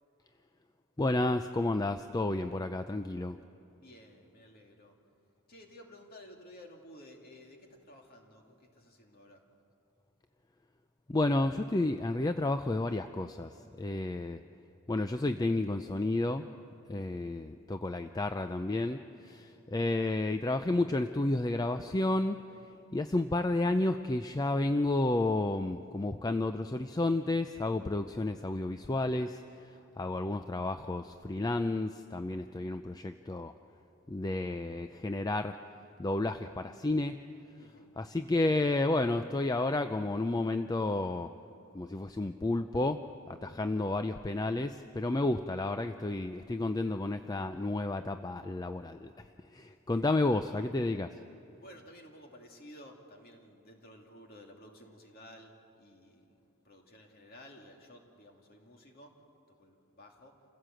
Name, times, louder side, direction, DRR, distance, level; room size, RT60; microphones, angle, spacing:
voice 1, 1.0-3.4 11.1-14.4 14.9-16.5 16.9-22.4 22.9-33.5 34.1-35.6 36.0-37.2 38.0-41.3 41.7-51.2, left 2 dB, 15° left, 8 dB, 0.4 m, -31 dB
voice 2, 3.8-5.0 5.5-9.5 37.6-37.9 49.9-50.2 51.6-59.2 59.5-60.4, left 1 dB, 45° left, 1 dB, 2.5 m, -54 dB
28.0 x 16.0 x 7.7 m, 2.9 s
head